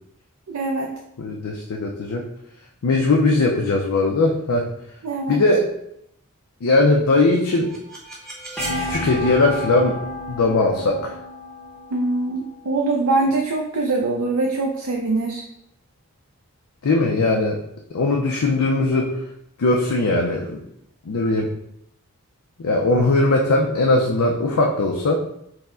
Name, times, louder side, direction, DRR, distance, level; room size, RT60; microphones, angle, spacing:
voice 1, 0.5-0.9 5.0-5.4 11.9-15.4, right 3 dB, 70° right, 0 dB, 0.5 m, -23 dB
voice 2, 1.2-2.3 2.8-4.7 5.3-5.6 6.6-7.7 8.8-10.0 10.3-11.1 16.8-17.6 17.9-19.2 19.6-20.6 21.1-21.5 22.6-25.2, left 2 dB, 85° left, 0 dB, 0.5 m, -19 dB
sound 1, 7.1-13.0, equal, 5° left, 0.7 m, -32 dB
4.7 x 2.1 x 3.6 m, 0.76 s
head